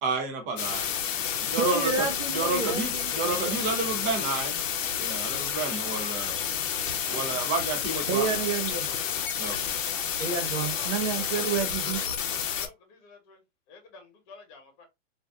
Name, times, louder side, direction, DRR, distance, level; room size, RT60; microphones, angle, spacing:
voice 1, 0.0-0.9 1.5-2.1 2.3-4.6 5.0-6.4 7.1-8.4 9.4-9.7, right 3 dB, 20° right, 0.5 m, -30 dB
sound 1, 0.6-12.7, left 8 dB, 75° left, 0.6 m, -30 dB
voice 2, 1.6-3.6 8.1-8.9 10.2-12.1, right 6 dB, 75° right, 0.7 m, -30 dB
voice 3, 10.7-11.5 12.0-13.4 13.7-14.8, left 4 dB, 35° left, 1.1 m, -50 dB
2.5 x 2.2 x 2.3 m
hypercardioid pair, 135°, 38 cm